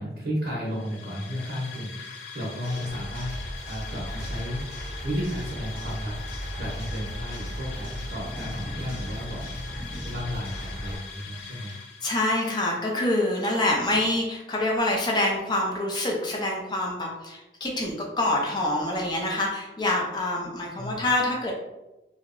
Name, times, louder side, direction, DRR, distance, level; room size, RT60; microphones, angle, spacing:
voice 1, 0.0-6.2 6.6-9.4 10.0-11.8 20.8-21.0, equal, 60° right, -6 dB, 0.6 m, -33 dB
sound 1, 0.6-12.5, left 5 dB, 80° left, 0.4 m, -42 dB
sound 2, 2.6-11.0, equal, 55° left, 0.8 m, -36 dB
voice 2, 12.0-21.5, left 1 dB, 25° left, -1 dB, 0.4 m, -26 dB
2.7 x 2.1 x 2.5 m, 0.99 s
head